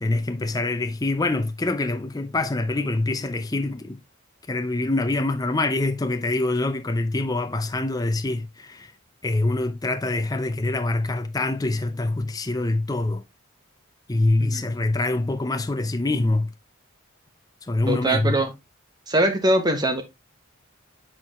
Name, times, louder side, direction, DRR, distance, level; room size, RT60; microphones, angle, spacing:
voice 1, 0.0-4.0 4.5-8.9 9.2-13.2 14.1-16.5 17.7-18.4, left 2 dB, 20° left, 0.5 m, -25 dB
voice 2, 17.9-18.5 19.1-20.0, right 1 dB, 20° right, 1.1 m, -22 dB
7.7 x 4.7 x 2.9 m
head